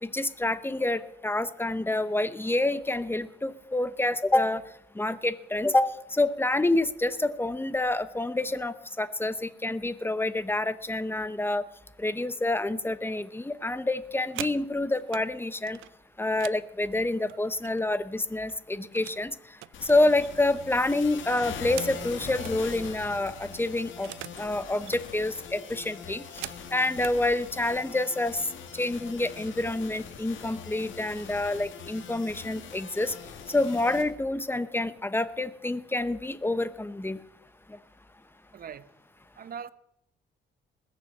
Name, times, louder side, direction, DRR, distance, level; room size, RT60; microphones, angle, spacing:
voice 1, 0.0-4.6 4.9-11.6 12.0-15.8 16.2-19.3 19.8-24.1 24.4-26.2 26.7-28.4 28.7-33.1 33.5-37.2, left 2 dB, 10° left, 0.9 m, -27 dB
sound 1, 14.0-15.3 15.7-18.0 18.3-19.2 19.6-22.6 23.0-23.1 23.3-24.5 24.7-25.1 25.6-27.2 28.0-28.2 28.6-28.9 29.2-29.7, right 15 dB, 90° right, 0.6 m, -44 dB
sound 2, 19.7-34.0, left 7 dB, 75° left, 2.5 m, -42 dB
voice 2, 38.5-38.9 39.4-39.7, right 7 dB, 50° right, 0.8 m, -40 dB
20.5 x 6.9 x 7.3 m
cardioid pair, 90°, 20 cm